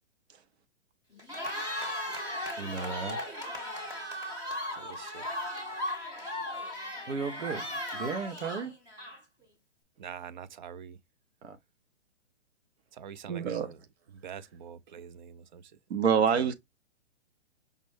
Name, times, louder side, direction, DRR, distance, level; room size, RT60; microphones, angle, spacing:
Cheering, 1.2-9.4, left 1 dB, 10° right, 0.8 m, -37 dB
voice 1, 2.6-3.3 7.1-8.7 11.4-11.6, right 5 dB, 85° right, 0.9 m, -35 dB
voice 2, 4.8-5.3 10.0-11.0 13.0-13.8 14.2-15.6 16.4-16.5, right 8 dB, 40° right, 0.4 m, -44 dB
voice 3, 13.3-13.7 15.9-16.5, right 7 dB, 60° right, 0.8 m, -25 dB
5.1 x 2.1 x 3.1 m
hypercardioid pair, 150°, 35 cm